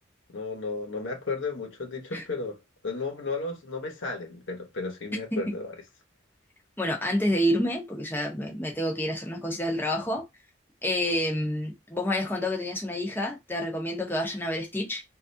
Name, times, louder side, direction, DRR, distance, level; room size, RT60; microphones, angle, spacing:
voice 1, 0.3-2.6 2.8-5.7, left 3 dB, 80° left, 1.0 m, -33 dB
voice 2, 6.8-10.3 10.8-15.0, left 1 dB, 10° left, 0.7 m, -28 dB
3.2 x 2.5 x 2.6 m
head